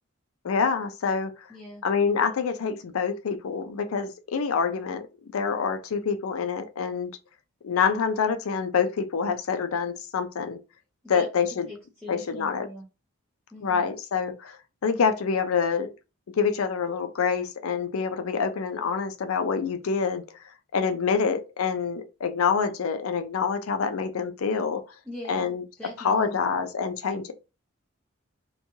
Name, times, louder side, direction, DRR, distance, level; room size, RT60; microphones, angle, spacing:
voice 1, 0.4-1.5 1.8-5.1 5.3-7.1 7.6-10.6 11.1-11.7 12.1-12.7 13.6-14.6 14.8-15.9 16.4-20.4 20.7-24.8 25.3-25.6 26.0-27.3, left 6 dB, 80° left, 0.5 m, -26 dB
voice 2, 1.5-1.9 11.0-11.3 11.7-12.8 13.5-13.9 25.0-26.5, left 1 dB, 5° left, 0.6 m, -42 dB
3.0 x 2.2 x 2.7 m
head